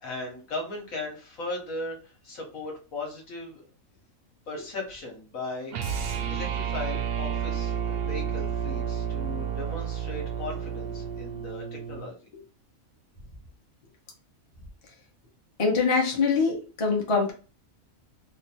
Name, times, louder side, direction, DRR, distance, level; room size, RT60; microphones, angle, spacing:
voice 1, 0.0-3.6 4.5-6.0 6.3-12.2, left 2 dB, 80° left, 0 dB, 1.6 m, -37 dB
sound 1, 5.7-12.1, right 8 dB, 60° right, 0.6 m, -31 dB
voice 2, 15.6-17.3, left 4 dB, 25° left, 0 dB, 0.8 m, -24 dB
3.3 x 2.1 x 4.1 m, 0.35 s
omnidirectional pair, 1.4 m